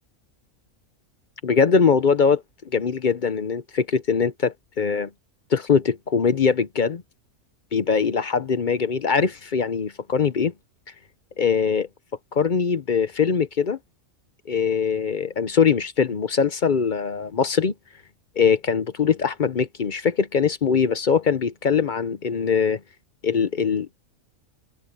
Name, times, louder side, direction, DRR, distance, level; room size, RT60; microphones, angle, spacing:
voice 1, 1.4-2.4 2.7-5.1 5.5-7.0 7.7-10.5 11.4-11.9 12.3-13.8 14.5-17.7 18.4-22.8 23.2-24.0, left 6 dB, 45° left, 0.7 m, -22 dB
omnidirectional pair, 1.5 m